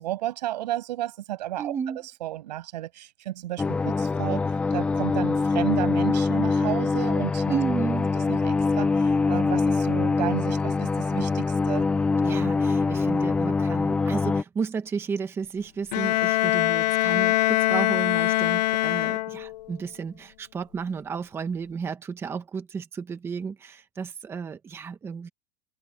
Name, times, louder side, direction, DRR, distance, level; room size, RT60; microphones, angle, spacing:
voice 1, 0.0-1.7 2.2-7.5 8.3-11.9 12.2-12.5, right 14 dB, 90° right, 6.7 m, -32 dB
voice 2, 1.6-2.1 7.5-8.1 12.2-25.3, right 6 dB, 10° right, 1.1 m, -32 dB
sound 1, 3.6-14.4, left 4 dB, 5° left, 0.4 m, -24 dB
Bowed string instrument, 15.9-19.7, left 16 dB, 90° left, 0.5 m, -23 dB
supercardioid pair, 175°, 21 cm